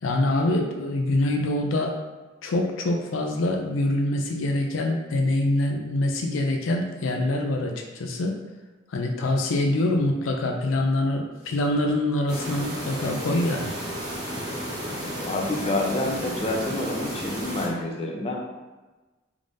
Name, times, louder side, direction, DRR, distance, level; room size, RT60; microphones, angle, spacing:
voice 1, 0.0-2.0 2.4-8.4 8.9-13.7, left 1 dB, 80° left, 2 dB, 0.4 m, -25 dB
sound 1, 12.3-17.7, equal, 20° right, 1.1 m, -33 dB
voice 2, 15.2-18.4, left 2 dB, 30° left, -1 dB, 0.5 m, -28 dB
3.6 x 3.3 x 2.6 m, 1.2 s
head